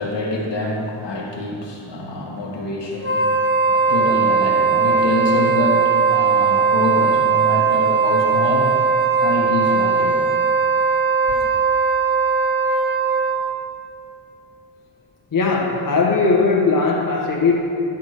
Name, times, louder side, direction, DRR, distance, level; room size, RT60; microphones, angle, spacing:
voice 1, 0.0-3.3 3.7-8.8 9.2-10.3, left 2 dB, 75° left, -1 dB, 1.4 m, -25 dB
Wind instrument woodwind instrument, 3.0-13.6, right 5 dB, 30° right, 1.0 m, -18 dB
voice 2, 15.3-17.5, left 4 dB, 45° left, -2 dB, 1.0 m, -18 dB
10.5 x 3.6 x 6.5 m, 2.5 s
wide cardioid pair, 135°, 44 cm